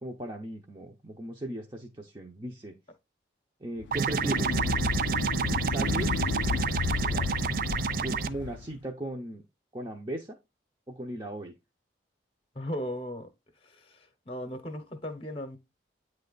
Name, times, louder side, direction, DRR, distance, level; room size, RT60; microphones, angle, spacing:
voice 1, 0.0-2.7 3.6-4.6 5.6-6.2 7.0-7.3 8.0-9.4 9.7-10.4 10.9-11.5, right 1 dB, 25° right, 0.7 m, -37 dB
sound 1, 3.8-8.7, left 5 dB, 80° left, 0.4 m, -32 dB
sound 2, 3.9-8.3, right 6 dB, 50° right, 0.3 m, -29 dB
voice 2, 12.5-13.3 13.6-15.6, equal, 30° left, 0.8 m, -37 dB
9.1 x 3.3 x 3.9 m
head